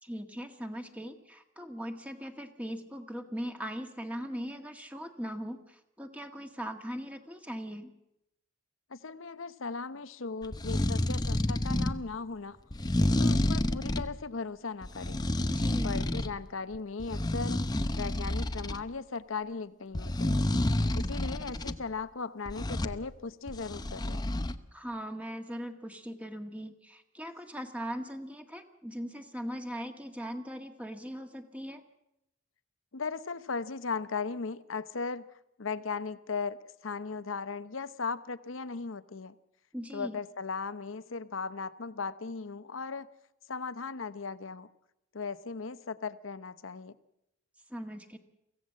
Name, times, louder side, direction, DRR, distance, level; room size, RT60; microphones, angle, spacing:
voice 1, 0.0-7.9 15.4-15.9 24.7-31.8 39.7-40.2 47.7-48.2, equal, 5° right, 6 dB, 1.7 m, -40 dB
voice 2, 8.9-12.6 13.2-15.2 15.8-17.6 18.0-20.4 21.0-24.2 32.9-35.2 35.6-39.4 39.9-43.1 43.5-44.7 45.1-46.9, left 4 dB, 80° left, 14 dB, 0.8 m, -37 dB
sound 1, 10.4-12.0 12.7-14.1 14.8-16.4 16.7-18.8 19.9-21.8 22.5-23.0 23.5-24.5, left 1 dB, 20° left, 0.7 m, -29 dB
24.0 x 16.0 x 7.5 m, 0.86 s
head